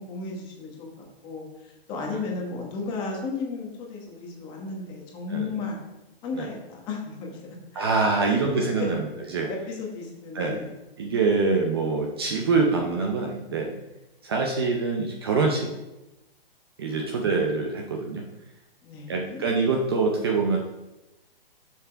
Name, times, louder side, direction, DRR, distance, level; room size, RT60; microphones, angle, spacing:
voice 1, 0.0-5.8 6.2-7.9 8.2-8.5 8.8-9.0 9.5-10.7 14.4-14.5 16.9-17.0 18.8-19.4, left 4 dB, 15° left, 0 dB, 1.2 m, -34 dB
voice 2, 7.7-9.5 10.3-10.6 11.0-13.7 14.2-15.7 16.8-18.2 19.1-20.6, right 4 dB, 25° right, 1 dB, 0.6 m, -25 dB
7.1 x 6.0 x 4.5 m, 0.99 s
hypercardioid pair, 165°, 30 cm